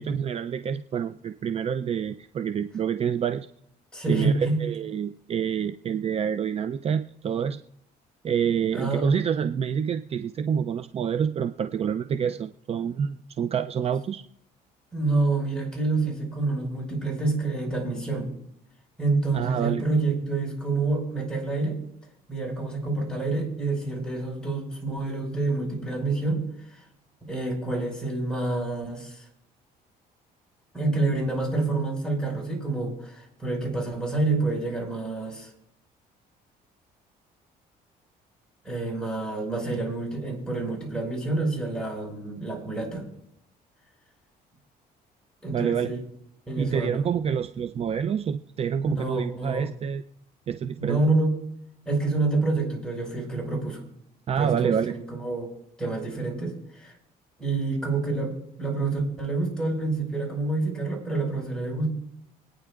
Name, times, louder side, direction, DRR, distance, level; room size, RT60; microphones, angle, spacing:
voice 1, 0.0-3.5 4.1-7.6 8.2-14.2 19.3-19.9 45.5-45.9 46.6-50.0 50.5-51.0 54.3-54.9, right 7 dB, 35° right, 10 dB, 0.4 m, -27 dB
voice 2, 3.9-4.6 8.7-9.1 14.9-18.3 19.0-21.8 22.3-26.4 26.7-26.8 27.2-29.2 30.7-35.5 38.6-43.0 45.4-46.0 46.5-47.0 48.8-49.7 50.8-51.4 51.8-53.8 54.4-55.5 55.8-56.9 57.4-61.9, right 3 dB, 5° left, -1 dB, 5.1 m, -27 dB
24.5 x 9.5 x 2.4 m, 0.74 s
cardioid pair, 110°, 17 cm